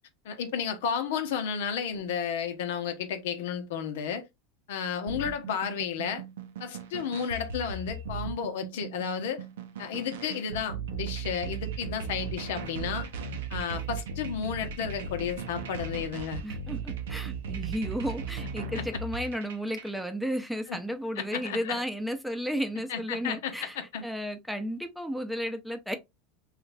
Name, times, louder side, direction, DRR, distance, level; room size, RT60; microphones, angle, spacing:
voice 1, 0.2-4.2 4.7-6.2 6.6-9.4 9.8-13.1 13.5-16.4 18.7-18.8 20.7-20.8 21.2-21.8 22.9-24.0, left 7 dB, 80° left, 0.8 m, -32 dB
sound 1, 5.1-20.0, right 5 dB, 90° right, 0.6 m, -37 dB
voice 2, 16.4-23.8 24.0-26.0, equal, ahead, 0.6 m, -33 dB
3.2 x 2.4 x 3.3 m
supercardioid pair, 120°, 0 cm